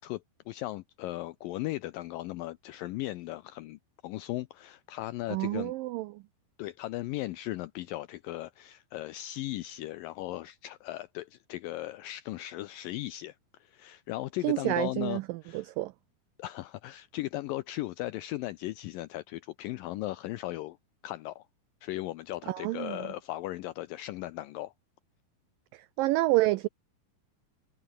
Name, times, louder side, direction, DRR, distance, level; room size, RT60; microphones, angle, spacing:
voice 1, 0.0-5.7 6.6-15.7 16.4-20.8 21.0-21.4 21.8-24.7, left 17 dB, 85° left, 2.0 m, -37 dB
voice 2, 5.3-6.2 14.4-15.9 22.5-23.0 25.7-26.7, right 18 dB, 85° right, 1.9 m, -29 dB
omnidirectional pair, 4.7 m